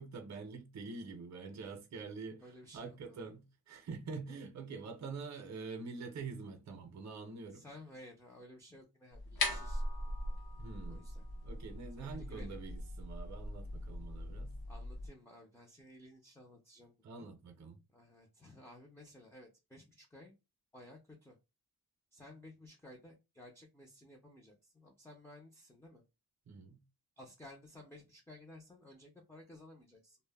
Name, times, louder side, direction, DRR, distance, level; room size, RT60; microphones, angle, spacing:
voice 1, 0.0-7.6 10.6-11.0 11.4-14.5 17.0-17.8 26.5-26.8, right 4 dB, 45° right, 0.5 m, -46 dB
voice 2, 2.4-3.2 7.5-10.1 10.9-11.2 12.0-12.6 14.7-17.3 17.9-20.3 20.7-21.4 22.1-26.0 27.2-30.2, left 1 dB, 5° left, 0.3 m, -56 dB
sound 1, 9.1-15.1, left 2 dB, 70° left, 0.7 m, -40 dB
2.0 x 2.0 x 3.3 m
wide cardioid pair, 170°, 38 cm